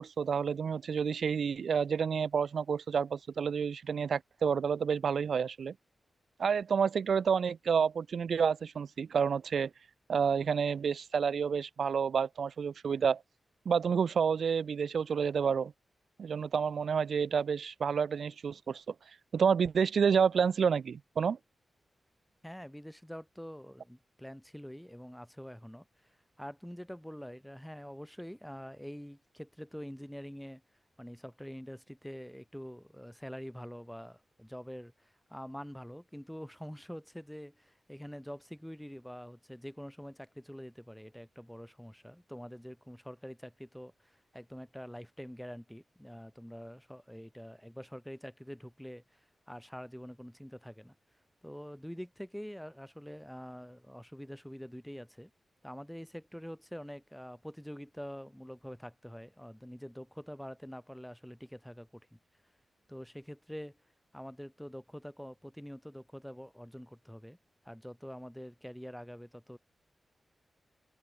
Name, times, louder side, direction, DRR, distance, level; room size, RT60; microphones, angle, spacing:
voice 1, 0.0-5.7 6.4-9.7 10.1-13.2 13.7-15.7 16.2-18.8 19.3-21.4, right 6 dB, 75° right, 0.5 m, -29 dB
voice 2, 22.4-30.6 31.0-50.9 51.4-55.3 55.6-62.2 62.9-63.8 64.1-67.4 67.6-69.6, equal, 5° left, 2.1 m, -46 dB
wide cardioid pair, 105°, 0 cm